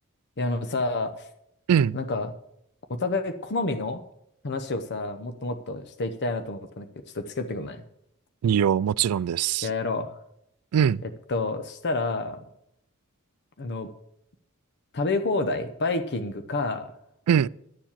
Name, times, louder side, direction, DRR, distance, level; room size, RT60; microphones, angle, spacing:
voice 1, 0.4-1.3 1.9-2.3 2.9-4.0 4.4-6.9 7.1-7.8 9.6-10.1 11.3-12.5 13.6-13.9 14.9-16.9, left 3 dB, 50° left, 0.8 m, -29 dB
voice 2, 8.4-9.7 10.7-11.0 17.3-17.5, right 8 dB, 85° right, 0.3 m, -22 dB
11.5 x 7.2 x 7.3 m
head